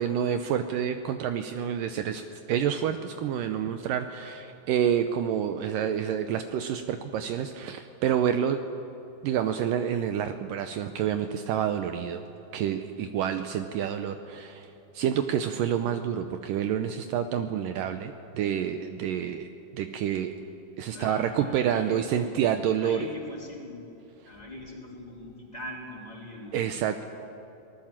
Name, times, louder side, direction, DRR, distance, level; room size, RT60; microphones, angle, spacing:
voice 1, 0.0-2.2 2.5-8.6 9.2-12.2 12.5-14.7 14.9-19.5 19.7-20.3 20.8-23.0 26.5-27.0, right 9 dB, 75° right, 8 dB, 2.3 m, -28 dB
voice 2, 20.9-22.3 22.8-24.0 24.2-26.7 26.9-27.0, left 2 dB, 10° left, -2 dB, 3.8 m, -42 dB
27.5 x 19.5 x 7.4 m, 2.9 s
omnidirectional pair, 4.3 m